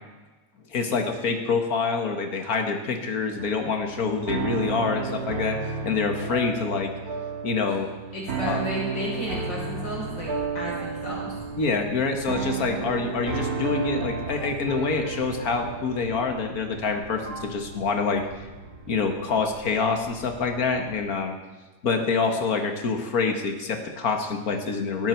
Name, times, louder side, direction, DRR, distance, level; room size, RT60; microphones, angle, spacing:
voice 1, 0.7-6.9 7.4-7.9 8.4-8.6 11.6-18.3 18.9-21.4 21.8-25.1, left 4 dB, 50° left, 5 dB, 2.0 m, -26 dB
sound 1, 3.4-19.6, right 5 dB, 55° right, 2.1 m, -33 dB
voice 2, 8.1-11.4, equal, 70° left, -5 dB, 6.6 m, -33 dB
sound 2, 9.0-21.0, equal, 70° right, 3.2 m, -47 dB
17.5 x 15.0 x 4.6 m, 1.2 s
omnidirectional pair, 2.0 m